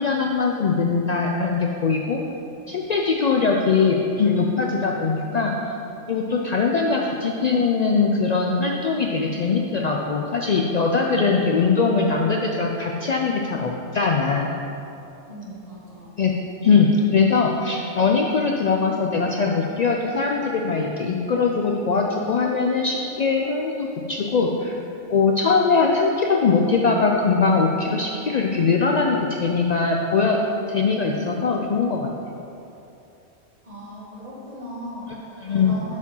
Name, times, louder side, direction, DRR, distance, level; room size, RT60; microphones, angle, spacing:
voice 1, 0.0-2.2 2.7-5.7 6.1-14.5 16.2-16.3 16.6-24.7 25.1-30.4 30.7-32.1 35.4-35.9, left 4 dB, 75° left, 0 dB, 0.3 m, -21 dB
voice 2, 15.3-16.1 33.6-36.0, equal, 30° right, -7 dB, 1.8 m, -38 dB
7.0 x 4.7 x 5.4 m, 2.8 s
omnidirectional pair, 1.3 m